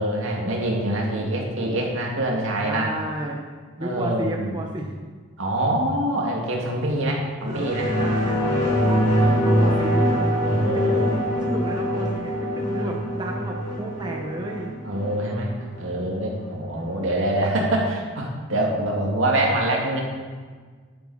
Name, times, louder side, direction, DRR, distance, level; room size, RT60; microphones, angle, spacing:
voice 1, 0.0-2.9 3.8-4.5 5.4-7.9 8.7-9.1 9.5-9.8 10.4-11.1 12.8-13.3 14.8-15.5 15.8-20.0, right 1 dB, 75° right, -1 dB, 2.2 m, -25 dB
voice 2, 2.6-3.4 3.8-5.0 7.4-10.1 10.6-14.7, right 1 dB, 20° right, 0 dB, 0.9 m, -32 dB
sound 1, 7.5-16.5 16.9-17.0, equal, 35° left, 3.5 m, -23 dB
11.5 x 9.4 x 4.2 m, 1.5 s
head